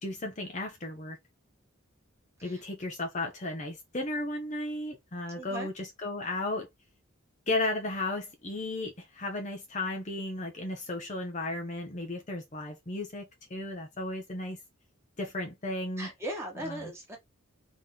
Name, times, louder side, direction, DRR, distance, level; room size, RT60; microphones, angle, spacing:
voice 1, 0.0-1.2 2.4-6.7 7.5-13.2 13.5-14.6 15.2-16.1 16.6-16.9, left 2 dB, 35° left, 0.8 m, -34 dB
voice 2, 5.3-5.7 16.0-17.2, right 1 dB, 10° right, 1.5 m, -38 dB
3.7 x 3.1 x 3.7 m
head